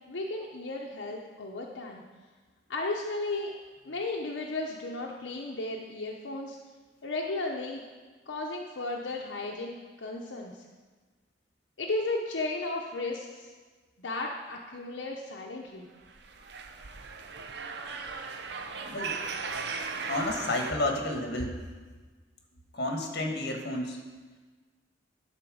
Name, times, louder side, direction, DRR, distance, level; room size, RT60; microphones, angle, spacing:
voice 1, 0.1-2.0 2.7-3.5 3.8-6.6 7.0-7.8 8.3-10.5 11.8-13.5 14.0-15.9, left 2 dB, 85° left, -1 dB, 0.8 m, -34 dB
sound 1, 16.0-20.7, right 4 dB, 65° right, 0.7 m, -37 dB
voice 2, 18.8-19.1 20.1-21.6 22.7-24.0, left 1 dB, 60° left, 2 dB, 1.4 m, -31 dB
11.0 x 4.4 x 6.2 m, 1.4 s
head